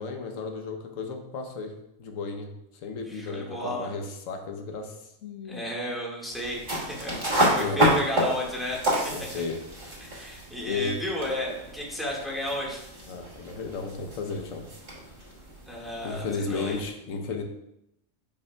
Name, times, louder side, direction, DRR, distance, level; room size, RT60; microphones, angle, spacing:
voice 1, 0.0-2.5 2.8-5.6 7.5-7.8 9.1-9.6 10.6-11.0 13.1-14.7 15.0-15.1 16.0-17.4, left 4 dB, 90° left, 4 dB, 1.2 m, -34 dB
voice 2, 3.1-3.9 5.5-8.9 10.0-12.8 15.7-16.8, left 1 dB, ahead, -4 dB, 1.6 m, -33 dB
sound 1, 6.3-16.9, right 1 dB, 35° right, 1.8 m, -30 dB
8.9 x 5.7 x 2.2 m, 0.82 s
omnidirectional pair, 1.3 m